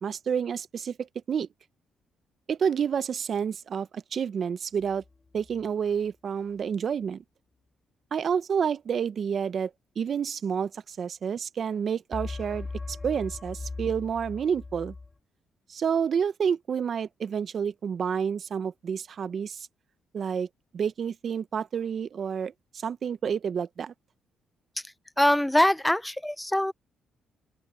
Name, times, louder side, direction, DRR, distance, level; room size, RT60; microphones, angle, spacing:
voice 1, 0.0-1.5 2.5-5.0 5.3-7.2 8.1-9.7 10.0-14.9 15.7-19.7 20.1-20.5 20.7-23.9, right 7 dB, 55° right, 0.8 m, -29 dB
sound 1, 4.7-5.6 12.1-15.1, left 3 dB, 25° left, 6.1 m, -39 dB
voice 2, 25.2-26.7, left 1 dB, 5° left, 0.8 m, -23 dB
open air
cardioid pair, 90°, 0 cm